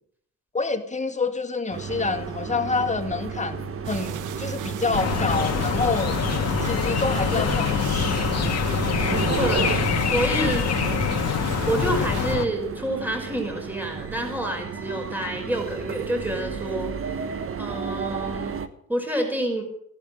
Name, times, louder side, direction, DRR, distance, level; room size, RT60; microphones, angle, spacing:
voice 1, 0.5-6.2 6.6-8.3, left 4 dB, 25° left, 7 dB, 2.0 m, -27 dB
sound 1, 1.7-18.7, right 6 dB, 45° right, 1.4 m, -33 dB
sound 2, 3.8-12.4, right 10 dB, 85° right, 1.3 m, -35 dB
sound 3, 4.9-12.5, left 7 dB, 55° left, 2.0 m, -25 dB
voice 2, 9.3-10.8 11.7-16.9 17.6-18.6 18.9-19.6, right 1 dB, 5° right, 2 dB, 5.4 m, -28 dB
16.0 x 11.0 x 7.8 m, 0.69 s
cardioid pair, 90°, 30 cm